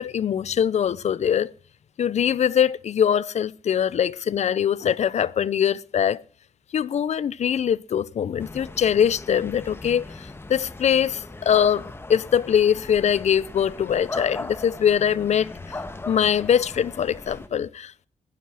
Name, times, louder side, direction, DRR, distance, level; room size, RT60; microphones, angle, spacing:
voice 1, 0.0-1.5 2.0-6.2 6.7-10.0 10.5-11.8 12.1-15.5 16.1-18.1, left 8 dB, 60° left, 0.7 m, -22 dB
sound 1, 8.4-17.5, left 2 dB, 20° left, 1.4 m, -38 dB
20.0 x 11.5 x 4.9 m
cardioid pair, 120°, 13 cm